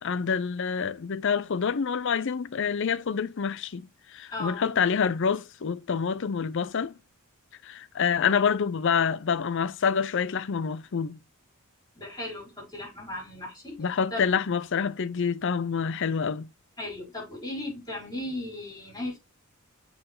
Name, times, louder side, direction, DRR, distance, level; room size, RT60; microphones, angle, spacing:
voice 1, 0.0-6.9 7.6-11.2 13.8-16.5, left 6 dB, 60° left, 0.5 m, -27 dB
voice 2, 4.3-4.7 12.0-13.8 14.1-14.3 16.8-19.2, left 2 dB, 20° left, 5.4 m, -36 dB
7.7 x 4.5 x 3.8 m
head